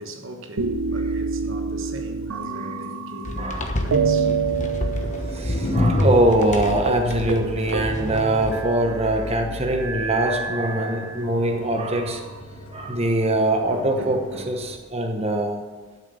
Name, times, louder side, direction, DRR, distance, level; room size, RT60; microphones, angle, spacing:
voice 1, 0.0-4.3 5.0-5.4 9.2-9.4 13.7-14.5, right 1 dB, 65° right, 1.2 m, -38 dB
sound 1, 0.6-3.5 3.9-5.7 6.0-6.1 6.4-6.6 6.9-7.0 7.3-9.0 9.8-11.3 12.1-13.0, right 5 dB, 85° right, 0.7 m, -28 dB
sound 2, 1.1-1.2 1.7-2.1 2.4-2.5 2.8-2.9 3.2-14.8, left 1 dB, 80° left, 2.2 m, -39 dB
sound 3, 3.2-8.6, left 1 dB, 35° left, 1.1 m, -27 dB
voice 2, 3.4-3.8 5.3-12.2 12.7-14.2 14.5-15.6, right 1 dB, 30° right, 1.0 m, -23 dB
12.0 x 6.6 x 6.9 m
head